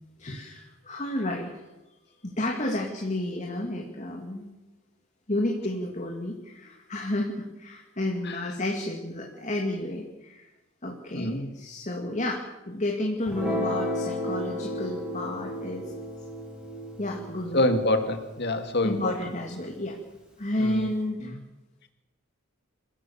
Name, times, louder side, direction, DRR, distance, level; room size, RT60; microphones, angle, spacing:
voice 1, 0.2-1.5 1.9-2.0 2.2-4.5 5.3-10.5 10.8-15.8 17.0-17.7 18.8-20.0 20.4-21.3, left 1 dB, 35° left, 1 dB, 2.5 m, -31 dB
voice 2, 11.1-11.5 17.5-19.1 20.6-20.9, left 1 dB, 50° left, 8 dB, 2.4 m, -26 dB
Guitar, 13.2-19.8, left 1 dB, 5° right, 5.5 m, -34 dB
28.5 x 16.5 x 7.3 m, 1.0 s
head